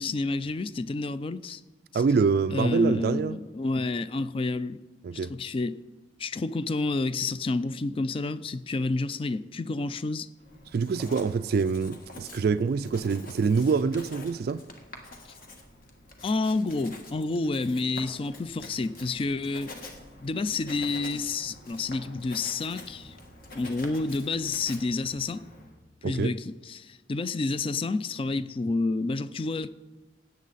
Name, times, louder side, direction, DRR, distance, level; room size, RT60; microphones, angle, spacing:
voice 1, 0.0-1.6 1.9-2.0 2.5-4.8 5.3-5.8 6.2-10.3 16.2-19.7 20.2-23.1 23.5-25.4 26.0-29.7, left 3 dB, 30° left, 0.3 m, -29 dB
voice 2, 1.9-3.4 5.0-5.3 10.7-14.6 26.0-26.3, right 5 dB, 55° right, 0.3 m, -25 dB
Writing, 10.4-25.8, left 2 dB, 50° left, 1.5 m, -47 dB
17.0 x 8.4 x 4.1 m
head